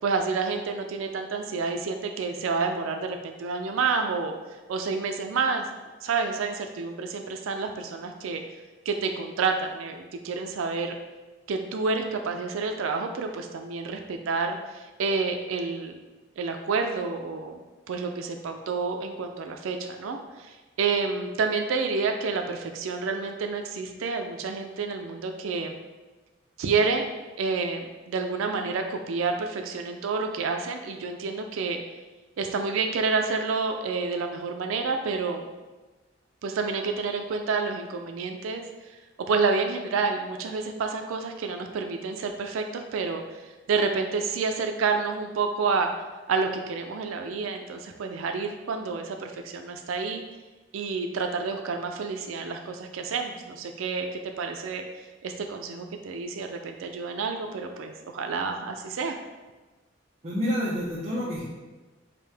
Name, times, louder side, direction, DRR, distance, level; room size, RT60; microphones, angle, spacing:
voice 1, 0.0-4.3 4.7-5.7 6.0-8.4 8.9-10.9 11.5-15.9 16.4-17.6 17.9-25.8 26.6-27.1 27.4-31.8 32.4-35.4 36.4-39.0 39.3-43.4 43.7-45.9 46.3-50.2 50.7-59.2, right 4 dB, 90° right, 5 dB, 0.4 m, -29 dB
voice 2, 60.2-61.4, equal, 30° right, -8 dB, 0.7 m, -28 dB
5.1 x 2.7 x 3.3 m, 1.2 s
head